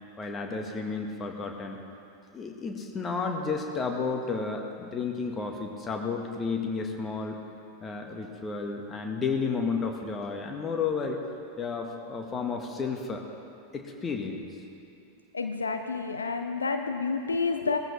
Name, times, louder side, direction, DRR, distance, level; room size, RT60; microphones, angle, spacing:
voice 1, 0.2-1.8 2.3-7.4 7.8-11.2 11.6-13.2 13.7-14.4, left 4 dB, 20° left, 3 dB, 1.6 m, -32 dB
voice 2, 15.3-17.8, left 4 dB, 75° left, 6 dB, 0.7 m, -29 dB
20.0 x 14.5 x 3.4 m, 2.7 s
figure-of-eight pair, 90°, 0 cm